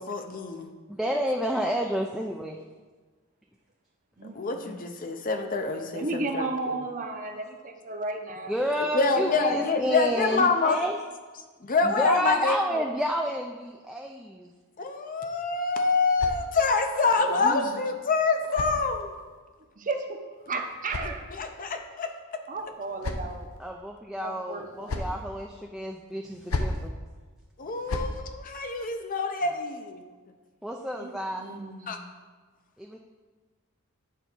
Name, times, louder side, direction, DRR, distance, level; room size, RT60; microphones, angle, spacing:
voice 1, 0.0-0.7 4.3-6.5 8.9-10.8 11.6-12.6 14.8-19.1 21.0-22.1 27.6-30.0 31.9-32.0, left 4 dB, 40° left, 6 dB, 0.6 m, -26 dB
voice 2, 0.9-2.6 8.5-11.0 11.8-14.5 23.6-26.9 30.6-31.6 32.8-33.0, equal, ahead, 0 dB, 0.4 m, -30 dB
voice 3, 4.2-4.8 5.9-8.5 9.1-9.5 17.2-17.7 19.8-20.2 20.5-21.3 22.5-23.5 24.2-25.1 31.0-32.1, right 3 dB, 35° right, 4 dB, 0.8 m, -34 dB
sound 1, 15.3-16.9 17.9-19.4 20.4-21.7 22.5-23.6 24.5-25.2 26.2-26.9 27.6-28.2, left 2 dB, 70° left, 0.7 m, -36 dB
9.2 x 4.0 x 6.0 m, 1.4 s
head